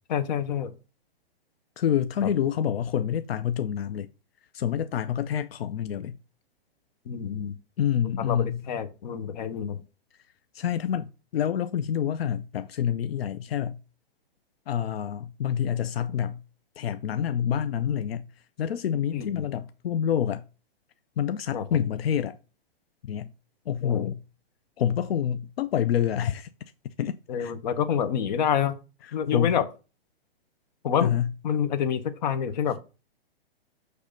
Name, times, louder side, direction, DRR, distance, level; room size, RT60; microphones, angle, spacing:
voice 1, 0.1-0.7 2.2-2.3 7.1-7.5 8.3-9.8 19.1-19.4 21.5-21.6 23.8-24.1 27.3-28.8 29.1-29.6 30.8-31.1 31.4-32.8, left 8 dB, 45° left, 0.8 m, -27 dB
voice 2, 1.8-4.1 4.5-6.2 7.8-8.6 10.5-13.8 14.7-16.4 16.8-18.3 18.6-20.4 21.2-22.4 23.0-23.3 23.7-24.2 24.8-26.5 27.0-27.1 27.4-27.5 29.0-29.6 31.0-31.3, left 9 dB, 75° left, 0.5 m, -27 dB
6.5 x 3.3 x 5.1 m
hypercardioid pair, 150°, 31 cm